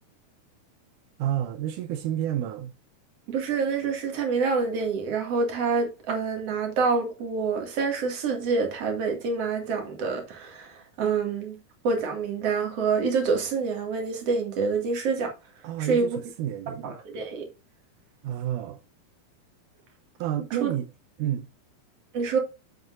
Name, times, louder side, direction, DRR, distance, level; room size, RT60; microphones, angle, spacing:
voice 1, 1.2-2.7 15.6-17.0 18.2-18.8 20.2-20.9 21.2-21.5, right 11 dB, 80° right, 1.8 m, -30 dB
voice 2, 3.3-11.6 11.8-15.3 15.8-16.2 16.8-17.5 20.6-20.7 22.1-22.4, right 4 dB, 45° right, 2.7 m, -27 dB
7.9 x 7.6 x 2.5 m
omnidirectional pair, 4.3 m